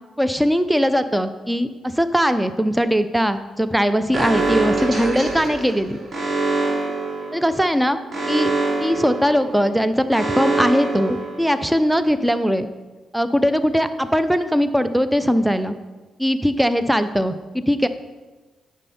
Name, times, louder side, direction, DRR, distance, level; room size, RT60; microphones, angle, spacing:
voice 1, 0.2-6.0 7.3-8.0 8.3-8.5 8.8-12.7 13.1-15.8 16.2-17.3 17.7-17.9, equal, 5° right, 11 dB, 0.8 m, -20 dB
Alarm, 4.1-11.9, right 3 dB, 50° right, 2.9 m, -25 dB
9.7 x 6.3 x 4.4 m, 1.2 s
hypercardioid pair, 45°, 0 cm